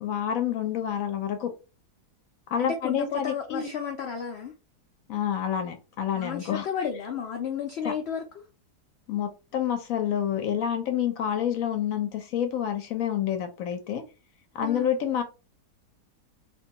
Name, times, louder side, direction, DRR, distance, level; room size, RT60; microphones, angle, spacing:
voice 1, 0.0-1.5 2.5-3.7 5.1-6.7 7.8-7.9 9.1-14.0 14.5-15.2, left 9 dB, 65° left, 0.9 m, -28 dB
voice 2, 2.6-4.5 6.2-8.2 14.6-14.9, left 7 dB, 85° left, 0.5 m, -32 dB
2.6 x 2.2 x 2.7 m
omnidirectional pair, 1.7 m